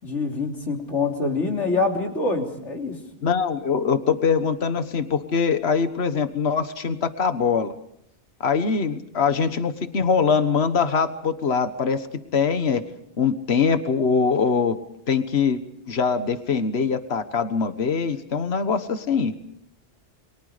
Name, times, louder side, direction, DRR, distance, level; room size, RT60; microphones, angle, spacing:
voice 1, 0.0-3.0, left 3 dB, 90° left, 2 dB, 3.8 m, -25 dB
voice 2, 3.2-7.7 8.4-12.1 12.3-12.8 13.2-14.8 15.1-15.6 15.9-19.3, left 5 dB, 65° left, 10 dB, 1.6 m, -23 dB
28.5 x 23.5 x 5.1 m, 0.71 s
omnidirectional pair, 1.2 m